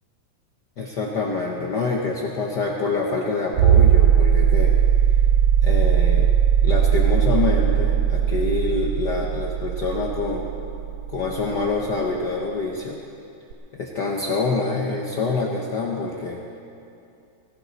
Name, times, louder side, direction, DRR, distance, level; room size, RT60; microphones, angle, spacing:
voice 1, 0.8-4.7 5.6-6.3 6.6-10.5 11.1-13.0 13.7-16.4, left 3 dB, 85° left, -1 dB, 0.9 m, -26 dB
sound 1, 3.5-12.0 13.5-13.6, right 10 dB, 85° right, 1.4 m, -18 dB
19.0 x 16.5 x 4.1 m, 2.7 s
omnidirectional pair, 3.4 m